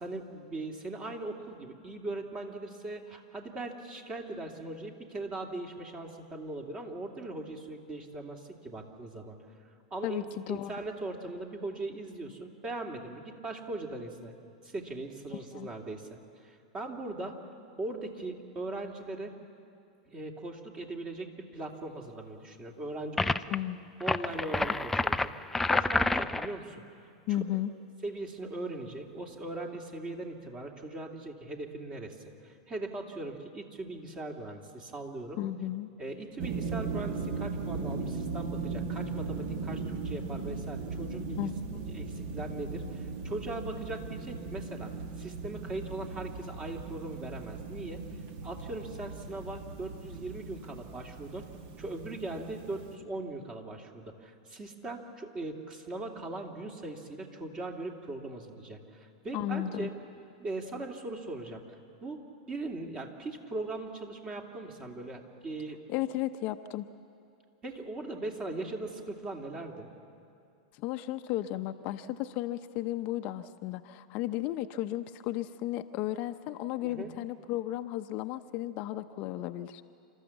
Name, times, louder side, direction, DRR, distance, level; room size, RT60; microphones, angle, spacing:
voice 1, 0.0-9.4 9.9-14.3 14.6-16.1 16.4-17.4 17.8-19.3 20.1-23.3 24.0-26.8 27.3-27.4 28.0-32.2 32.4-35.4 36.0-41.5 41.9-44.9 45.2-48.0 48.4-51.4 51.8-59.9 60.4-61.6 62.0-62.2 62.5-65.8 67.6-69.9 76.8-77.1, right 2 dB, 25° right, 2 dB, 2.8 m, -39 dB
voice 2, 10.0-10.7 15.3-15.7 23.5-23.9 27.3-27.7 35.4-35.9 41.4-41.8 59.3-59.9 65.9-66.9 70.8-79.8, left 13 dB, 45° left, 9 dB, 0.7 m, -34 dB
sound 1, 23.2-23.6 24.0-26.5, left 2 dB, 5° left, 0.5 m, -28 dB
sound 2, 36.4-52.9, right 4 dB, 50° right, 1.5 m, -38 dB
29.5 x 13.5 x 7.2 m, 2.5 s
hypercardioid pair, 105°, 3 cm